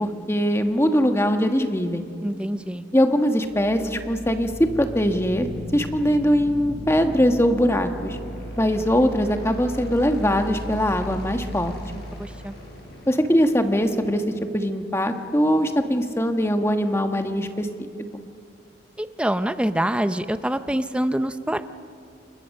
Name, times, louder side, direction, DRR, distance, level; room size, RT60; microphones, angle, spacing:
voice 1, 0.0-2.1 2.9-5.5 5.7-8.2 8.6-11.7 13.1-14.2 14.5-17.7 18.1-18.2, equal, 15° left, 6 dB, 1.3 m, -21 dB
voice 2, 2.2-2.8 12.2-12.5 19.0-21.6, right 1 dB, 5° right, 10 dB, 0.6 m, -25 dB
sound 1, 3.4-15.4, equal, 55° left, 7.7 m, -37 dB
29.0 x 22.0 x 6.5 m, 2.4 s
head